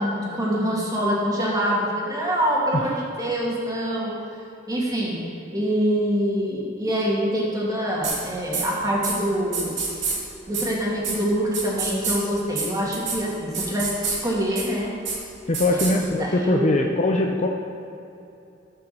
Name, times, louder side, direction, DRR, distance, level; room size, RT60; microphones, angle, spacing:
voice 1, 0.0-4.1 4.7-5.2 5.5-9.8 10.5-14.9 15.7-16.9, equal, 20° right, -4 dB, 2.4 m, -25 dB
sound 1, 8.0-8.2 8.5-8.6 9.0-9.1 9.5-10.2 10.5-10.7 11.0-11.1 11.5-12.2 12.6-12.7 12.9-13.2 13.5-14.2 14.6-14.7 15.0-15.2 15.5-15.9, right 5 dB, 65° right, 2.6 m, -26 dB
voice 2, 15.5-17.5, left 2 dB, 40° left, 1 dB, 0.6 m, -21 dB
14.5 x 5.7 x 6.9 m, 2.8 s
head